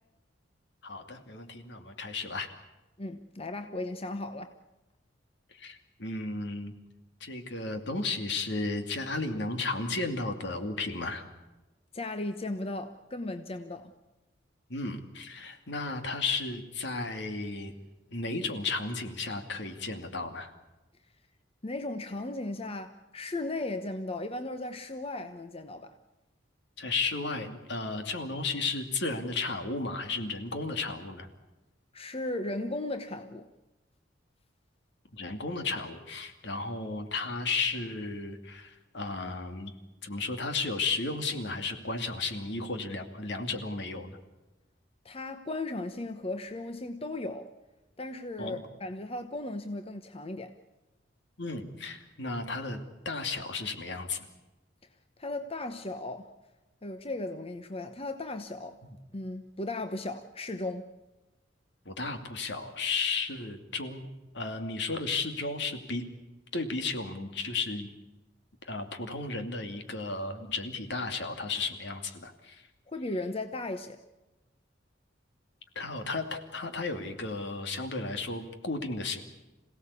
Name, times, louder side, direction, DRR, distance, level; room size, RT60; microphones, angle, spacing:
voice 1, 0.8-2.5 5.6-6.7 7.2-11.2 14.7-17.7 18.1-20.5 26.8-31.3 35.1-39.7 40.0-44.2 48.4-48.6 51.4-52.8 53.0-54.3 58.8-59.0 61.8-64.1 64.3-66.0 66.5-67.9 68.6-72.6 75.7-79.2, left 3 dB, 65° left, 2.7 m, -34 dB
voice 2, 3.0-4.6 11.9-13.9 21.6-26.0 31.9-33.5 45.0-47.5 48.0-50.6 55.2-56.3 56.8-58.8 59.1-60.9 72.9-74.0, left 2 dB, 30° left, 1.0 m, -36 dB
27.0 x 17.0 x 8.5 m
head